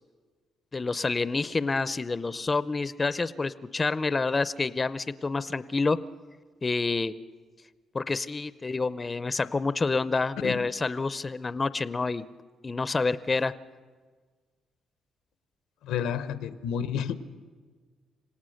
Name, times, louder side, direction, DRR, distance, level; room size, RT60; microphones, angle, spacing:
voice 1, 0.7-6.0 6.6-7.1 7.9-12.3 12.6-13.5, left 3 dB, 25° left, 15 dB, 0.6 m, -28 dB
voice 2, 15.8-17.1, left 8 dB, 90° left, 13 dB, 0.8 m, -30 dB
26.5 x 17.5 x 6.4 m, 1.5 s
cardioid pair, 90°, 0 cm